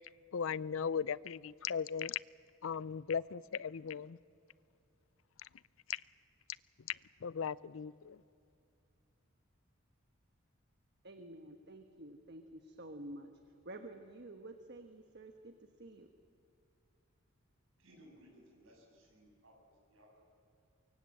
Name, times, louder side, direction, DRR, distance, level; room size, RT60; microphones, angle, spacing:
voice 1, 0.3-2.2 2.6-4.2 5.9-6.0 7.2-8.2, left 7 dB, 75° left, 0.5 m, -37 dB
voice 2, 11.0-13.3 13.6-16.1, right 1 dB, 55° right, 1.3 m, -50 dB
voice 3, 17.8-20.2, equal, 75° right, 7.4 m, -62 dB
24.0 x 24.0 x 7.6 m
head